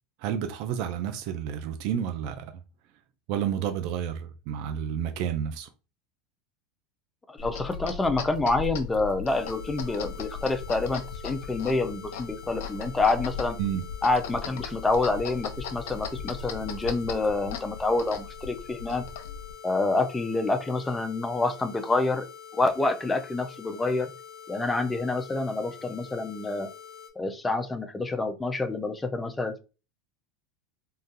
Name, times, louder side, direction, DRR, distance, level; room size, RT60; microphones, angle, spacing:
voice 1, 0.2-2.6 3.3-5.7 13.6-13.8, right 9 dB, 55° right, 0.4 m, -30 dB
voice 2, 7.3-13.6 14.0-19.0 19.6-22.3 22.5-24.1 24.5-26.7 27.2-29.6, left 3 dB, 10° left, 0.4 m, -27 dB
sound 1, 7.4-19.5, left 6 dB, 85° left, 0.7 m, -37 dB
sound 2, 9.3-27.1, left 7 dB, 65° left, 1.1 m, -46 dB
3.7 x 2.4 x 2.7 m
supercardioid pair, 145°, 0 cm